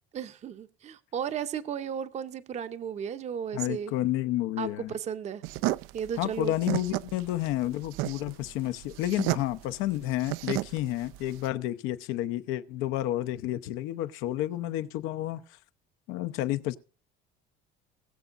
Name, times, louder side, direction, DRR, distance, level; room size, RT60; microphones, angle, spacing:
voice 1, 0.1-3.9 4.6-5.4 5.9-6.5, right 8 dB, 35° right, 0.7 m, -34 dB
voice 2, 3.5-4.9 6.2-15.4 16.1-16.7, left 14 dB, 85° left, 0.9 m, -30 dB
sound 1, 5.4-11.5, right 18 dB, 85° right, 0.4 m, -33 dB
20.5 x 7.2 x 2.5 m
cardioid pair, 145°, 21 cm